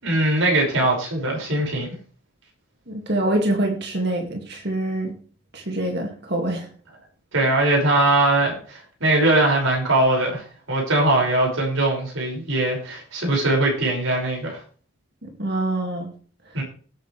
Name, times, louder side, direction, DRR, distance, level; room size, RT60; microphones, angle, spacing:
voice 1, 0.0-1.9 7.3-14.6 16.5-16.6, right 2 dB, 70° right, -1 dB, 6.1 m, -21 dB
voice 2, 2.9-5.2 5.5-6.7 15.2-16.1, right 1 dB, 50° right, 2 dB, 2.3 m, -25 dB
17.5 x 9.2 x 3.4 m, 0.41 s
head